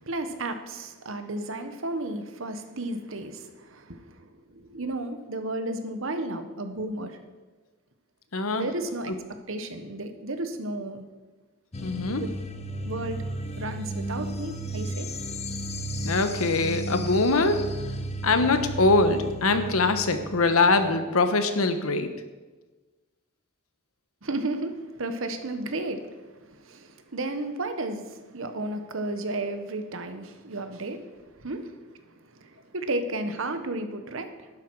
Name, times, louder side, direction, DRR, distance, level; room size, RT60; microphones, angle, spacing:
voice 1, 0.0-7.2 8.6-9.1 9.5-11.0 12.2-12.3 12.8-13.2 13.6-15.1 24.2-31.7 32.1-34.5, right 2 dB, 65° right, 8 dB, 1.1 m, -33 dB
voice 2, 8.3-8.7 9.1-9.2 11.8-12.2 16.0-17.6 18.2-22.1, left 3 dB, 90° left, 9 dB, 1.1 m, -23 dB
sound 1, 11.7-20.8, right 1 dB, 30° left, 0.8 m, -34 dB
11.5 x 11.0 x 4.7 m, 1.3 s
head